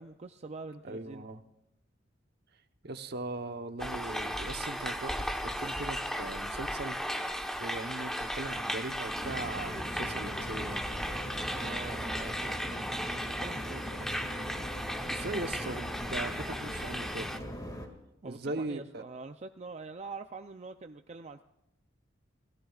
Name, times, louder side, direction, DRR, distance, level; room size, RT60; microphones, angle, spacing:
voice 1, 0.0-1.3 11.5-14.1 18.2-21.4, right 3 dB, 35° right, 7 dB, 0.5 m, -45 dB
voice 2, 0.8-1.4 2.8-7.0 7.6-10.8 15.1-17.4 18.2-19.0, right 2 dB, 60° right, 8 dB, 1.0 m, -39 dB
sound 1, 3.8-17.4, equal, 5° left, 1.1 m, -36 dB
sound 2, 9.1-17.9, equal, 20° left, 2.1 m, -40 dB
27.5 x 17.5 x 2.4 m, 0.89 s
head